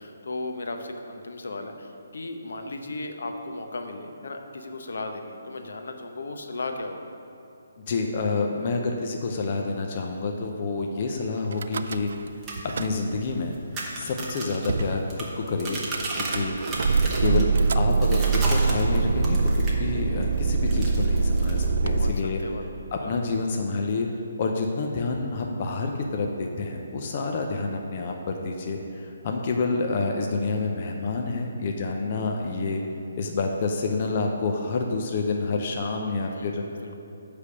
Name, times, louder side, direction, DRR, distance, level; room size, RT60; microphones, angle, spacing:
voice 1, 0.0-7.1 21.8-23.1 36.2-36.9, left 2 dB, 70° left, 5 dB, 0.8 m, -36 dB
voice 2, 7.9-12.1 12.6-13.6 13.9-15.8 16.2-16.6 17.2-19.4 19.7-22.4 22.9-24.1 24.4-32.8 33.2-36.6, left 3 dB, 35° left, 2 dB, 0.5 m, -28 dB
Car / Engine starting / Idling, 11.5-12.3 12.6-13.3 14.0-14.1 14.3-14.4 14.7-15.0 15.9-22.1, right 4 dB, 55° right, 0.3 m, -24 dB
sound 1, 12.3-19.8 20.2-21.7, right 2 dB, 10° right, 0.9 m, -35 dB
9.9 x 3.4 x 6.8 m, 2.9 s
hypercardioid pair, 170°, 0 cm